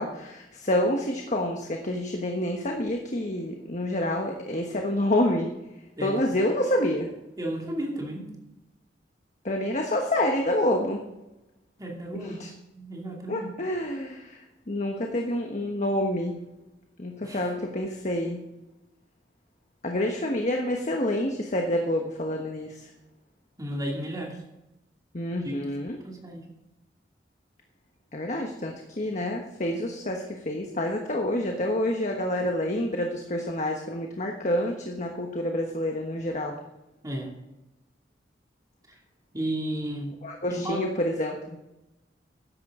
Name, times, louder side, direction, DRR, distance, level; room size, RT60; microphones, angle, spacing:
voice 1, 0.0-5.5 6.0-7.1 9.4-11.0 12.1-12.5 13.3-16.4 17.0-18.4 19.8-22.9 25.1-26.0 28.1-36.6 40.2-41.6, left 1 dB, 45° left, 2 dB, 1.3 m, -28 dB
voice 2, 7.4-8.3 11.8-12.4 12.7-13.5 17.2-17.5 23.6-24.4 25.4-25.5 26.0-26.4 37.0-37.3 39.3-40.1 40.5-40.8, right 1 dB, 20° right, -1 dB, 2.7 m, -33 dB
13.5 x 10.5 x 3.8 m, 0.96 s
head